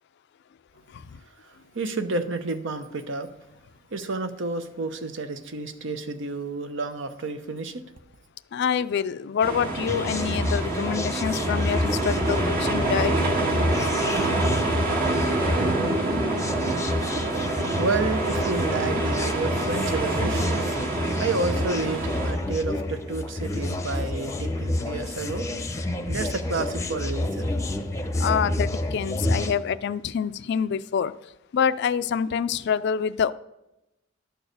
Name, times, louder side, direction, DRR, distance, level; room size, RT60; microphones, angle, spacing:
voice 1, 1.4-3.3 3.9-7.8 17.8-25.5 26.1-27.5, right 3 dB, 65° right, 9 dB, 0.8 m, -30 dB
voice 2, 8.5-13.2 28.2-31.1 31.5-33.3, left 7 dB, 55° left, 15 dB, 0.3 m, -26 dB
sound 1, 9.4-22.3, right 2 dB, 50° right, 1.7 m, -27 dB
sound 2, 9.9-29.5, left 1 dB, 15° left, 0.7 m, -29 dB
11.5 x 4.7 x 6.6 m, 0.91 s
head